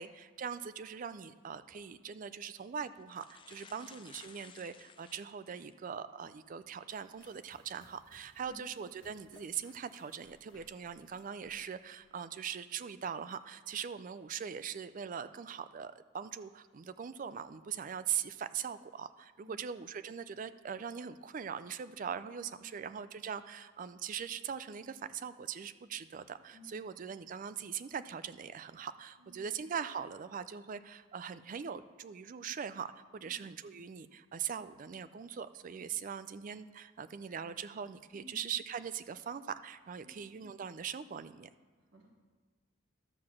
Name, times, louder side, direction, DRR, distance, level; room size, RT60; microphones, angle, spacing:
voice 1, 0.0-41.5, right 7 dB, 40° right, 13 dB, 0.4 m, -41 dB
sound 1, 1.6-1.8 2.6-2.7 3.0-5.8 6.4-6.5 8.3-8.5 9.1-9.4, left 6 dB, 25° left, 0.4 m, -57 dB
sound 2, 6.9-12.8, left 3 dB, 65° left, 1.2 m, -66 dB
voice 2, 26.5-26.9 29.2-29.5 33.2-33.4 38.1-38.4 40.0-40.2 41.8-42.1, left 1 dB, 65° right, -4 dB, 1.5 m, -57 dB
12.0 x 4.8 x 7.1 m, 1.4 s
head